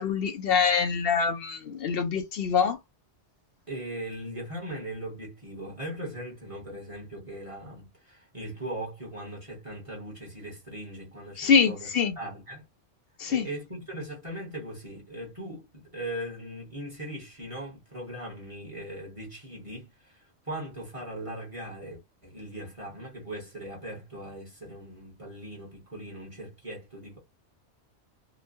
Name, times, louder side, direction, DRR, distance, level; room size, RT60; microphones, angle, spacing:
voice 1, 0.0-2.8 11.4-12.2 13.2-13.5, left 6 dB, 65° left, 0.7 m, -25 dB
voice 2, 3.7-11.9 12.2-12.6 13.2-27.2, right 1 dB, 30° right, 1.1 m, -39 dB
2.9 x 2.2 x 2.6 m
omnidirectional pair, 1.2 m